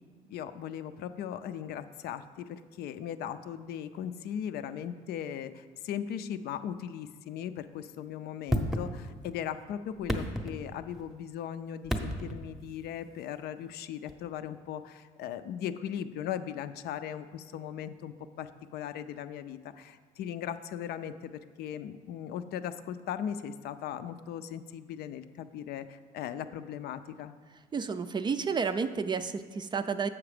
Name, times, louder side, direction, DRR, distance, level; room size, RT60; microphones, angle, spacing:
voice 1, 0.3-21.3 21.6-27.4, left 9 dB, 70° left, 11 dB, 0.5 m, -38 dB
sound 1, 8.5-9.4 9.9-11.1 11.8-12.5 14.1-14.2, equal, ahead, 0.7 m, -32 dB
voice 2, 27.7-30.1, right 5 dB, 25° right, 11 dB, 0.4 m, -31 dB
7.2 x 5.9 x 4.9 m, 1.5 s
cardioid pair, 110°, 17 cm